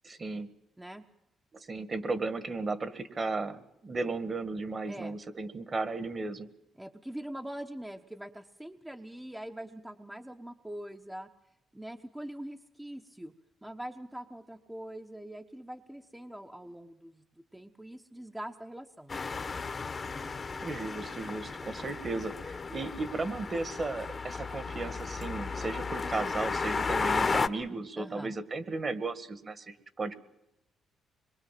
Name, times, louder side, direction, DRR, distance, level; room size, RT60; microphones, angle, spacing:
voice 1, 0.0-0.5 1.5-6.5 20.6-30.1, right 3 dB, 35° right, 12 dB, 1.8 m, -35 dB
voice 2, 6.8-11.3 11.7-13.3 13.6-17.2 17.5-19.6 21.8-21.9 28.0-28.3, right 1 dB, 10° right, 4 dB, 1.1 m, -43 dB
sound 1, 19.1-27.5, left 4 dB, 35° left, 1.2 m, -34 dB
25.0 x 22.5 x 7.6 m, 0.85 s
cardioid pair, 90°, 0 cm